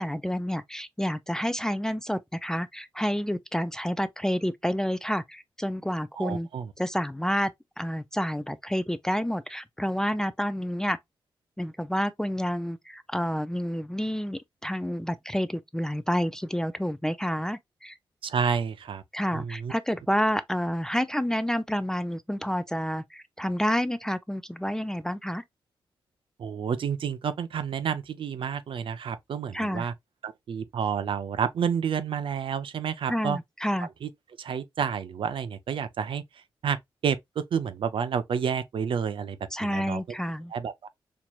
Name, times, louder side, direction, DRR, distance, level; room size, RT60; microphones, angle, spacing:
voice 1, 0.0-6.5 6.8-7.5 7.8-11.0 11.6-17.9 19.1-25.4 29.5-29.9 33.1-33.9 39.5-40.5, equal, 5° left, 0.3 m, -29 dB
voice 2, 6.2-6.7 18.2-19.0 19.3-19.7 26.4-29.9 30.2-33.4 34.0-34.1 34.4-36.2 36.6-36.8 37.0-40.0 40.5-40.9, right 7 dB, 70° right, 0.5 m, -30 dB
4.5 x 2.9 x 2.3 m
cardioid pair, 80°, 9 cm